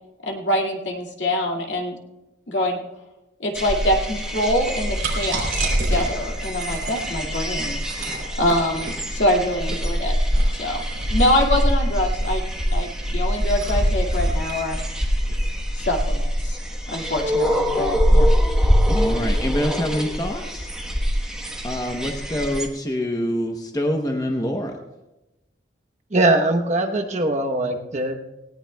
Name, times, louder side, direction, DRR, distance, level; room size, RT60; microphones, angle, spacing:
voice 1, 0.3-2.0 2.5-2.8 3.4-7.8 8.4-10.2 10.5-10.8 11.1-12.4 12.7-14.8 15.8-16.6 16.9-18.3, left 1 dB, 70° left, 0 dB, 2.2 m, -24 dB
sound 1, 3.5-22.7, equal, 5° right, 1.2 m, -24 dB
sound 2, 4.6-16.0, right 1 dB, 75° right, 3.1 m, -27 dB
voice 2, 18.9-20.7 21.6-24.7, equal, 20° left, 3 dB, 0.8 m, -25 dB
voice 3, 26.1-28.1, right 2 dB, 40° right, 3 dB, 1.0 m, -21 dB
18.5 x 18.0 x 2.3 m, 1.0 s
head